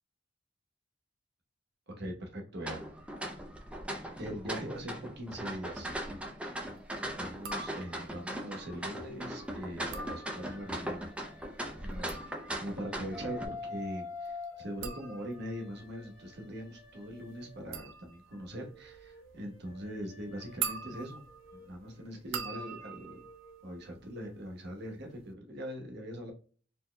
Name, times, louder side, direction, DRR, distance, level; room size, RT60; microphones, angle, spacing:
voice 1, 1.9-2.8 4.2-5.9 7.2-11.1 11.8-12.2 12.6-21.2 21.5-23.2 23.6-26.3, equal, 60° right, 2 dB, 1.1 m, -41 dB
sound 1, 2.6-13.5, equal, 5° right, 0.5 m, -39 dB
sound 2, 7.3-8.2 9.7-10.8 11.8-24.5 24.8-25.3, right 6 dB, 90° right, 0.4 m, -44 dB
sound 3, 8.7-12.2 12.7-17.9 18.3-23.9, left 3 dB, 70° left, 1.0 m, -49 dB
4.3 x 2.7 x 2.2 m, 0.40 s
head